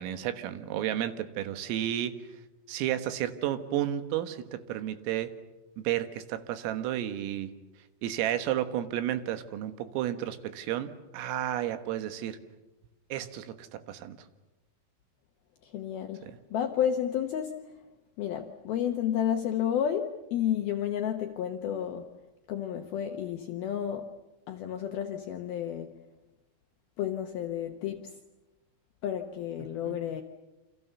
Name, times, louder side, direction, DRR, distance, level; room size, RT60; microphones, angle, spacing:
voice 1, 0.0-2.1 2.7-5.3 5.8-7.5 8.0-12.4 13.1-14.2 16.2-16.3 29.8-29.9, right 12 dB, 80° right, 10 dB, 4.0 m, -32 dB
voice 2, 15.6-17.8 18.2-22.1 22.5-24.1 24.5-25.9 27.0-28.2 29.0-30.2, left 9 dB, 75° left, 5 dB, 2.2 m, -31 dB
28.5 x 27.0 x 6.9 m, 1.0 s
omnidirectional pair, 5.9 m